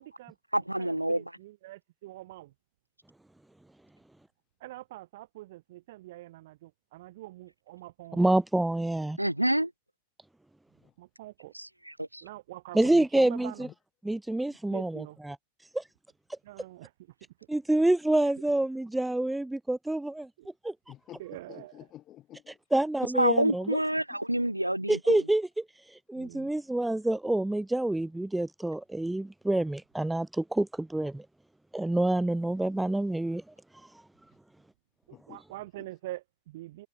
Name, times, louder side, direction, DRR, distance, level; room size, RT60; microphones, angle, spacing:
voice 1, 0.0-0.4 0.8-2.5 4.6-8.4 11.0-11.5 12.2-13.7 14.7-15.2 16.4-17.1 18.2-18.3 20.4-20.5 21.2-21.8 26.2-26.5 35.1-36.9, right 17 dB, 55° right, 1.8 m, -45 dB
voice 2, 0.5-1.2 9.2-9.7 11.5-12.2 23.1-25.3, right 1 dB, 85° right, 0.5 m, -28 dB
voice 3, 8.1-9.2 12.7-13.7 14.0-15.4 15.7-15.9 16.3-16.4 17.5-20.3 20.6-20.7 22.5-23.6 24.9-25.5 25.8-31.3 31.7-33.4 33.7-33.9, right 1 dB, 5° right, 0.6 m, -27 dB
voice 4, 20.9-22.6 35.1-35.4 35.8-35.9, left 13 dB, 30° left, 2.5 m, -49 dB
figure-of-eight pair, 90°, 0 cm